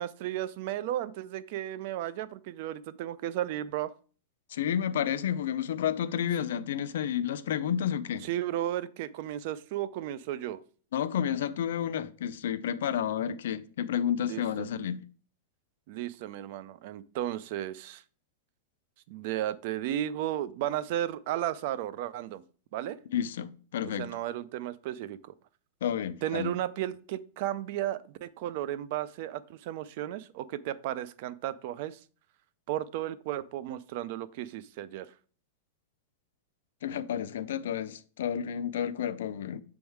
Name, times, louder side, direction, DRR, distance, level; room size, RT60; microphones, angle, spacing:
voice 1, 0.0-3.9 8.2-10.6 14.2-14.7 15.9-18.0 19.1-22.4 22.7-23.0 23.9-25.3 26.2-32.0 32.7-35.1, right 12 dB, 40° right, 0.3 m, -34 dB
voice 2, 4.5-8.3 10.9-15.1 23.1-24.1 25.8-26.5 36.8-39.6, left 9 dB, 70° left, 0.4 m, -31 dB
6.2 x 3.5 x 4.5 m
supercardioid pair, 180°, 0 cm